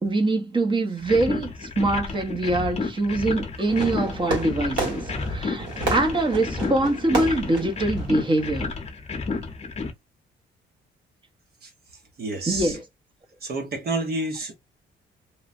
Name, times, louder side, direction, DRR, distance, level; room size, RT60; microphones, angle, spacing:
voice 1, 0.0-5.0 5.3-8.7 12.5-12.8, right 2 dB, 25° right, 0.9 m, -24 dB
sound 1, 1.0-9.9, left 3 dB, 35° left, 0.8 m, -31 dB
Fireworks, 3.7-8.7, right 2 dB, 65° right, 1.8 m, -32 dB
voice 2, 12.2-12.8 13.4-14.5, right 2 dB, 50° right, 0.9 m, -29 dB
3.1 x 2.1 x 2.5 m
cardioid pair, 90°, 20 cm